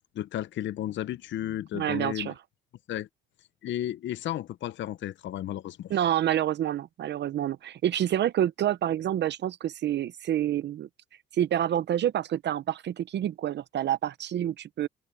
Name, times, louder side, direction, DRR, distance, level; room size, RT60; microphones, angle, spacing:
voice 1, 0.1-2.3 2.9-3.1 3.6-5.9, left 12 dB, 70° left, 0.7 m, -33 dB
voice 2, 1.7-2.3 5.9-10.9 11.3-14.9, right 11 dB, 60° right, 0.6 m, -28 dB
cardioid pair, 90°, 20 cm